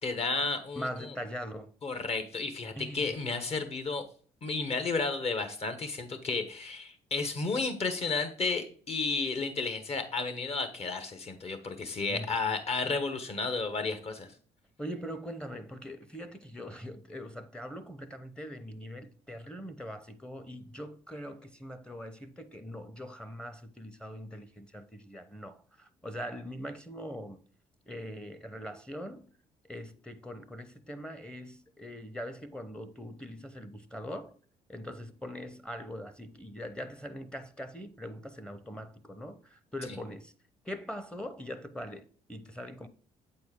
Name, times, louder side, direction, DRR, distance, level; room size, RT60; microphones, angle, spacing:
voice 1, 0.0-1.1 1.8-4.0 4.4-14.3, left 4 dB, 45° left, 1.3 m, -32 dB
voice 2, 0.8-1.7 2.8-3.2 12.1-12.3 14.8-27.4 27.9-29.3 29.7-34.3 34.7-40.3 40.6-42.9, equal, 5° left, 0.7 m, -42 dB
7.7 x 4.4 x 3.6 m
supercardioid pair, 70°, 14 cm